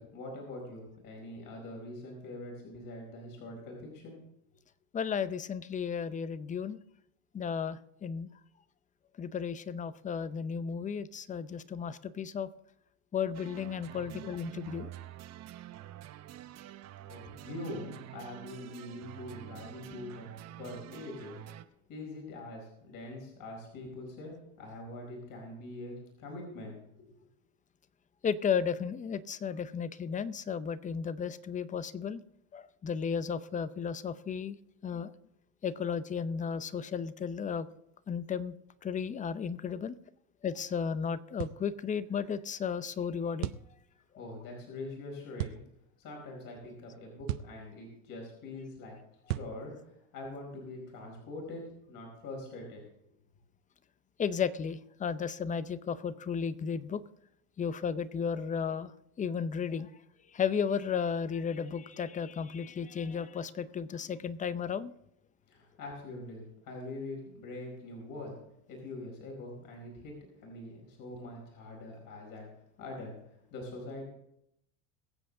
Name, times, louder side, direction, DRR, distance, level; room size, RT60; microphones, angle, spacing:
voice 1, 0.0-4.2 17.1-20.3 20.6-21.4 21.9-27.3 44.2-45.6 46.0-49.0 49.3-52.8 65.5-68.4 68.7-70.2 70.4-72.5 72.8-74.1, left 2 dB, 45° left, 0 dB, 4.7 m, -44 dB
voice 2, 4.9-6.8 7.3-8.3 9.2-12.5 13.1-14.9 28.2-32.2 32.5-34.6 34.8-35.1 35.6-37.7 38.1-38.6 38.8-40.0 40.4-43.5 54.2-57.0 57.6-58.9 59.2-59.9 60.3-64.9, left 6 dB, 15° left, 15 dB, 0.6 m, -34 dB
sound 1, 13.3-21.6, right 13 dB, 35° right, 0.8 m, -47 dB
sound 2, 41.4-41.6 43.4-43.7 45.4-45.6 47.3-47.6 49.3-49.6, right 15 dB, 70° right, 0.8 m, -35 dB
23.0 x 7.7 x 3.8 m, 0.79 s
supercardioid pair, 110°, 45 cm